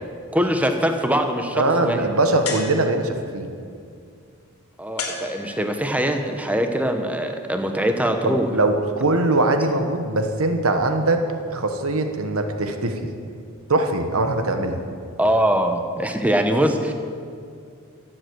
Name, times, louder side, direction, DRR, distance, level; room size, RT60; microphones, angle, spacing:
voice 1, 0.3-2.0 4.8-8.5 15.2-16.9, equal, 5° right, 5 dB, 0.9 m, -22 dB
voice 2, 1.5-3.5 8.2-13.0 13.7-14.8, right 2 dB, 75° right, 6 dB, 1.1 m, -22 dB
sound 1, 2.4-3.3 5.0-6.0, left 3 dB, 90° left, 2.3 m, -32 dB
14.5 x 7.8 x 7.9 m, 2.3 s
head